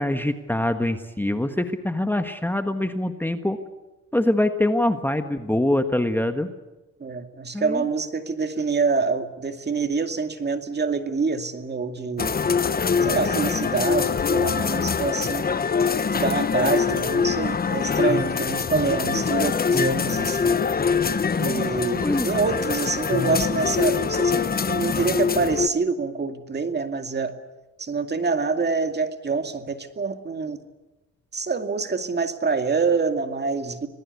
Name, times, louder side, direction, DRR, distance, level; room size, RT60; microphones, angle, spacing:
voice 1, 0.0-3.6 4.1-6.5 7.5-7.8 22.0-22.3, left 1 dB, 5° left, 7 dB, 1.5 m, -24 dB
voice 2, 7.0-12.3 13.0-15.5 16.1-20.6 21.4-27.3 27.8-30.6 31.3-33.9, right 4 dB, 35° right, 7 dB, 2.3 m, -26 dB
sound 1, 12.2-25.7, left 5 dB, 30° left, 1.1 m, -23 dB
26.5 x 19.5 x 8.4 m, 1.1 s
cardioid pair, 90°, 30 cm